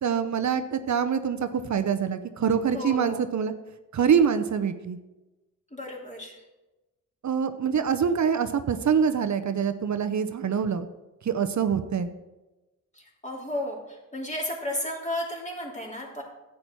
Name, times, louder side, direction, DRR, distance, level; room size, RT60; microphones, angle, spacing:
voice 1, 0.0-3.5 3.9-5.0 7.2-10.9 11.2-12.1, right 7 dB, 55° right, 10 dB, 0.8 m, -25 dB
voice 2, 2.7-3.2 5.7-6.4 12.9-16.2, left 1 dB, 20° left, -3 dB, 3.2 m, -33 dB
10.5 x 8.6 x 4.6 m, 1.1 s
cardioid pair, 75°, 34 cm